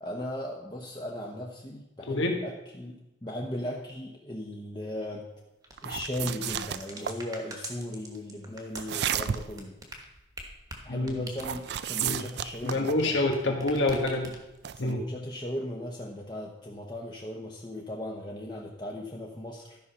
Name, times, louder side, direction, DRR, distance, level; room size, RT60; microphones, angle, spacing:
voice 1, 0.0-5.3 5.8-9.8 10.8-13.2 14.7-19.8, left 1 dB, 25° left, -1 dB, 0.9 m, -37 dB
voice 2, 2.1-2.4 10.9-11.3 12.0-12.2 12.6-14.3 14.8-15.0, left 2 dB, 80° left, 2 dB, 1.5 m, -27 dB
sound 1, 5.6-13.4 13.6-14.6, right 2 dB, 20° right, 1.2 m, -44 dB
sound 2, 5.8-7.2 8.8-9.6 11.4-13.1 14.6-14.9, right 9 dB, 60° right, 0.3 m, -33 dB
12.5 x 5.5 x 5.6 m, 0.95 s
head